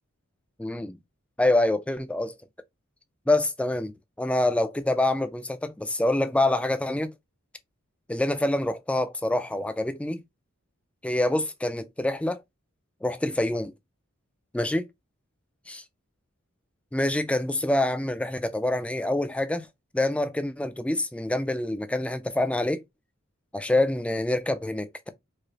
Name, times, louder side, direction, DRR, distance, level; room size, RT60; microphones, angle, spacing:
voice 1, 0.6-1.0 1.4-2.4 3.3-3.9 4.2-7.1 8.1-10.2 11.0-12.4 13.0-13.7 14.5-14.9 15.7-15.8 16.9-19.7 19.9-22.8 23.5-25.1, left 1 dB, 5° left, 0.3 m, -26 dB
4.8 x 2.0 x 2.7 m
head